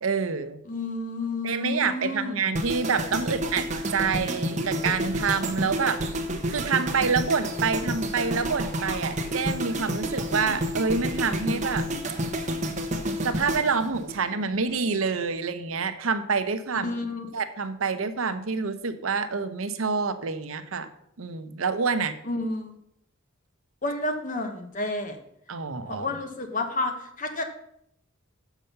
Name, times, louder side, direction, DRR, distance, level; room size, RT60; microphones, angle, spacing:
voice 1, 0.0-0.6 1.4-3.7 3.9-6.0 6.5-11.9 13.2-16.9 17.3-20.9 21.2-22.2 25.5-26.1, right 5 dB, 80° right, 11 dB, 0.8 m, -27 dB
voice 2, 0.6-2.5 16.8-17.3 22.2-22.8 23.8-25.2 25.9-27.4, left 2 dB, 40° left, 6 dB, 1.1 m, -30 dB
sound 1, 2.6-14.7 15.0-15.3, equal, 35° right, 1.0 m, -30 dB
6.5 x 6.1 x 6.7 m, 0.74 s
head